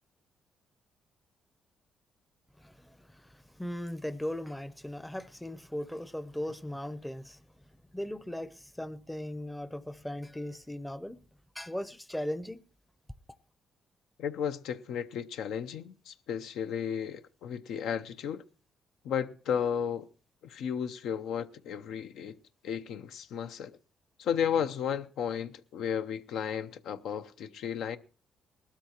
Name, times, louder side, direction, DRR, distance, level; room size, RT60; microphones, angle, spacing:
voice 1, 2.6-7.4 7.9-11.2 11.6-12.6, left 1 dB, 5° left, 0.6 m, -38 dB
voice 2, 14.2-18.4 19.0-20.1 20.4-22.4 22.6-23.7 24.2-28.0, left 8 dB, 80° left, 0.6 m, -33 dB
19.5 x 13.0 x 2.9 m
cardioid pair, 90°, 0 cm